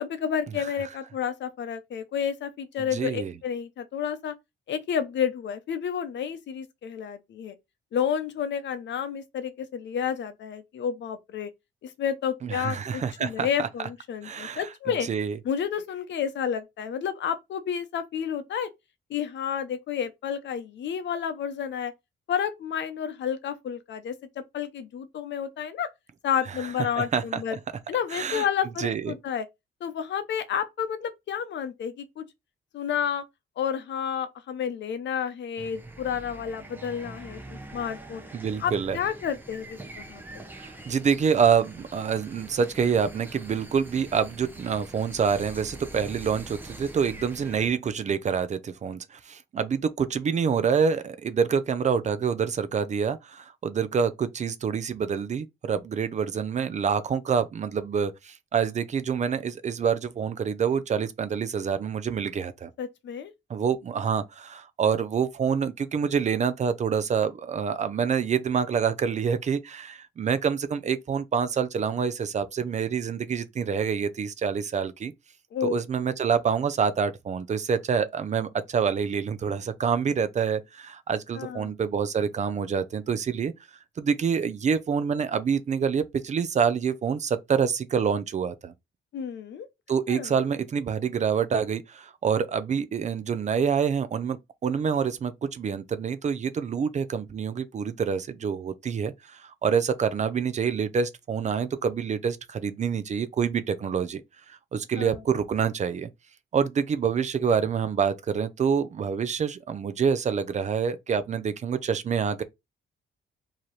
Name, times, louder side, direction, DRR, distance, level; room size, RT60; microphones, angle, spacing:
voice 1, 0.0-4.3 4.7-7.5 7.9-11.5 11.8-15.1 15.4-18.7 19.1-21.9 22.3-25.9 26.2-27.6 27.9-29.4 29.8-32.2 32.7-33.2 33.6-38.2 38.6-40.4 62.8-63.3 75.5-75.8 81.4-81.7 89.1-89.7 90.1-90.3 105.0-105.2, left 8 dB, 65° left, 0.7 m, -30 dB
voice 2, 2.8-3.3 12.4-13.7 14.2-14.7 15.1-15.4 26.5-26.7 27.0-27.6 28.1-28.5 28.8-29.1 38.3-39.0 40.5-62.7 63.5-75.1 75.6-83.5 84.0-88.7 89.9-104.2 104.5-106.1 106.5-112.4, right 6 dB, 35° right, 0.5 m, -27 dB
sound 1, 35.6-47.7, right 2 dB, 10° right, 0.7 m, -44 dB
4.7 x 2.9 x 3.1 m
cardioid pair, 155°, 20 cm